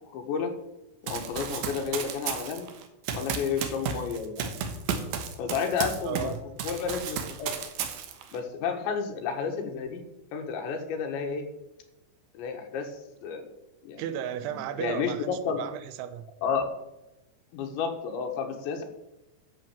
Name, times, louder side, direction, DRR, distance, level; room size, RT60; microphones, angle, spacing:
voice 1, 0.1-0.5 1.0-2.7 3.1-4.5 5.4-6.3 6.6-7.5 8.3-10.0 10.3-11.5 12.3-13.5 13.8-14.0 14.4-15.6 16.4-16.7 17.5-18.8, left 6 dB, 80° left, 4 dB, 3.8 m, -31 dB
Run, 1.1-6.3 6.6-8.4, right 7 dB, 65° right, 2.5 m, -33 dB
voice 2, 6.0-6.4 14.0-16.3, right 10 dB, 90° right, 12 dB, 3.2 m, -34 dB
11.5 x 7.5 x 7.1 m, 0.94 s
omnidirectional pair, 5.2 m